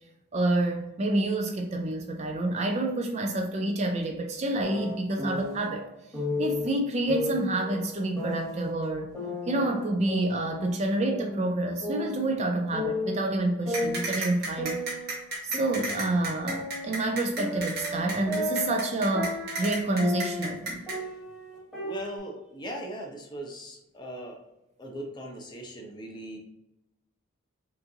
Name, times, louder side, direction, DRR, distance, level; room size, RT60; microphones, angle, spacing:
voice 1, 0.3-5.8 6.4-9.2 9.5-14.8 15.4-20.9, right 2 dB, 30° right, 3 dB, 0.3 m, -28 dB
sound 1, 4.6-5.7 6.1-6.6 7.1-8.7 9.1-10.7 11.0-12.5 12.7-13.2 13.7-16.1 16.5-20.6 20.9-22.2, left 1 dB, ahead, 1.1 m, -34 dB
sound 2, 13.7-21.0, right 2 dB, 45° right, 1.2 m, -33 dB
voice 2, 21.8-24.4 24.8-26.4, equal, 20° left, 0 dB, 0.6 m, -39 dB
5.3 x 2.5 x 2.7 m, 0.92 s
head